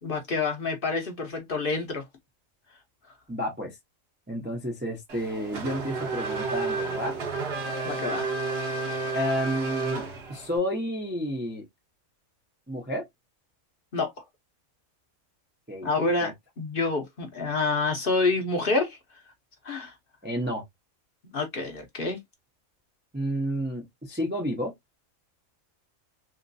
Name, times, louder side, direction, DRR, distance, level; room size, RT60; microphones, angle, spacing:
voice 1, 0.0-2.0 7.8-8.3 13.9-14.2 15.8-19.0 19.6-19.9 21.3-22.2, left 3 dB, 50° left, 0.9 m, -28 dB
voice 2, 3.3-3.8 4.3-7.1 9.1-10.0 10.3-11.6 12.7-13.1 15.7-15.9 16.2-16.3 20.2-20.6 23.1-24.7, equal, 10° right, 0.5 m, -30 dB
Race car auto racing / Accelerating revving vroom, 5.1-10.6, right 3 dB, 55° right, 1.0 m, -31 dB
3.1 x 2.9 x 2.5 m
omnidirectional pair, 1.4 m